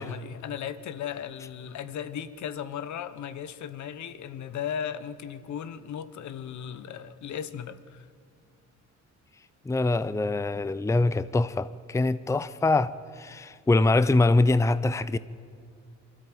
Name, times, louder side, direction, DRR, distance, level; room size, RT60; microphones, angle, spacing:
voice 1, 0.0-8.1, left 8 dB, 70° left, 1.2 m, -36 dB
voice 2, 9.7-15.2, left 2 dB, 10° left, 0.6 m, -24 dB
23.0 x 13.5 x 9.2 m
cardioid pair, 90°, 30 cm